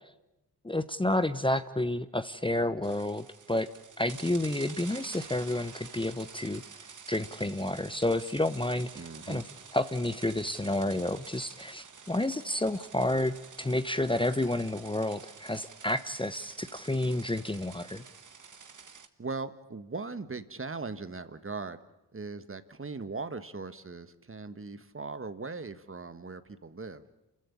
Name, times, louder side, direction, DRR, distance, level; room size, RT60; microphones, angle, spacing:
voice 1, 0.6-3.7 4.0-6.6 7.1-9.4 9.7-18.0, left 1 dB, 10° left, 12 dB, 1.0 m, -30 dB
sound 1, 2.8-19.1, right 6 dB, 50° right, 1.7 m, -49 dB
voice 2, 8.9-9.4 19.2-21.8 22.1-27.2, right 4 dB, 30° right, 12 dB, 1.5 m, -39 dB
28.0 x 14.5 x 9.8 m, 0.96 s
supercardioid pair, 40°, 40 cm